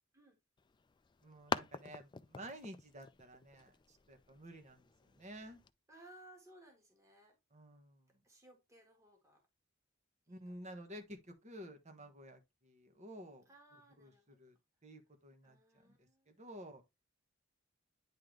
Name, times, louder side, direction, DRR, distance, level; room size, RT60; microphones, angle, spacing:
sound 1, 0.6-5.7, left 5 dB, 20° left, 0.4 m, -46 dB
voice 1, 1.2-5.6 7.5-8.1 10.3-13.5 14.0-14.1 14.4-14.6 14.8-15.6 15.8-16.8, equal, 35° right, 1.3 m, -52 dB
voice 2, 5.9-7.3 8.2-9.4 10.3-10.6 11.7-11.8 13.4-14.4 15.4-16.8, right 1 dB, 15° right, 1.7 m, -62 dB
9.8 x 3.8 x 3.2 m
head